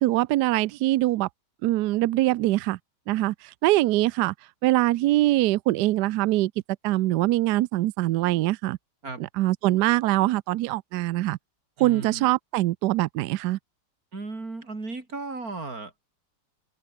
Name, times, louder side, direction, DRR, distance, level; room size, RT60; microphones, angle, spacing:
voice 1, 0.0-1.3 1.6-2.8 3.1-3.3 3.6-4.3 4.6-6.5 6.8-8.8 9.4-11.4 11.8-13.6, right 16 dB, 75° right, 1.1 m, -23 dB
voice 2, 11.8-12.3 14.1-16.1, right 3 dB, 55° right, 4.8 m, -35 dB
omnidirectional pair, 1.9 m